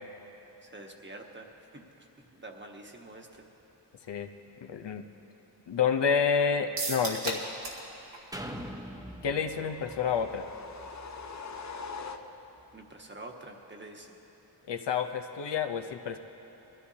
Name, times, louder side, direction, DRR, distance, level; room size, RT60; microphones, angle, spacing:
voice 1, 0.6-1.5 1.7-1.8 2.3-3.3 12.7-14.1, right 2 dB, 25° right, 2 dB, 1.3 m, -46 dB
voice 2, 4.6-5.1 5.7-7.4 9.2-10.4 14.7-16.2, left 6 dB, 80° left, 6 dB, 0.8 m, -29 dB
sound 1, 6.8-7.9 8.1-8.2 8.6-8.7, right 2 dB, 90° right, 1.9 m, -34 dB
sound 2, 8.3-12.1 12.6-12.7, equal, 10° right, 0.9 m, -44 dB
sound 3, 9.5-12.7, left 4 dB, 40° left, 0.7 m, -43 dB
22.0 x 14.5 x 2.8 m, 3.0 s
wide cardioid pair, 105°, 42 cm